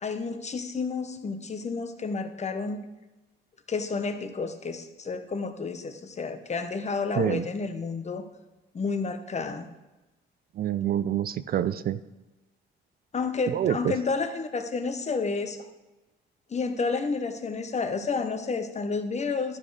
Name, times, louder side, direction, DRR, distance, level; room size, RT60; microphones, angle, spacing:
voice 1, 0.0-2.8 3.7-8.2 8.7-9.7 13.1-15.7 16.5-19.6, left 4 dB, 35° left, 8 dB, 0.9 m, -30 dB
voice 2, 10.6-12.0 13.5-13.9, right 10 dB, 50° right, 15 dB, 0.4 m, -26 dB
12.5 x 5.0 x 4.8 m, 1.0 s
cardioid pair, 90°, 20 cm